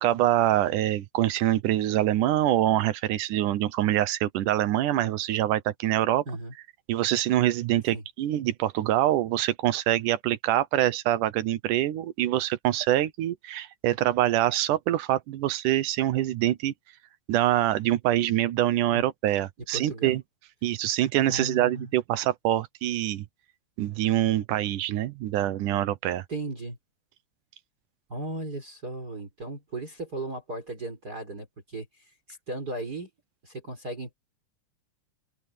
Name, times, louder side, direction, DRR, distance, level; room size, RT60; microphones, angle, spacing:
voice 1, 0.0-6.2 6.9-16.7 17.3-20.2 20.6-23.3 23.8-26.3, right 13 dB, 80° right, 2.4 m, -25 dB
voice 2, 19.7-20.2 21.3-21.9 26.3-26.8 28.1-33.1 33.4-34.1, right 2 dB, 30° right, 4.4 m, -36 dB
open air
omnidirectional pair, 3.7 m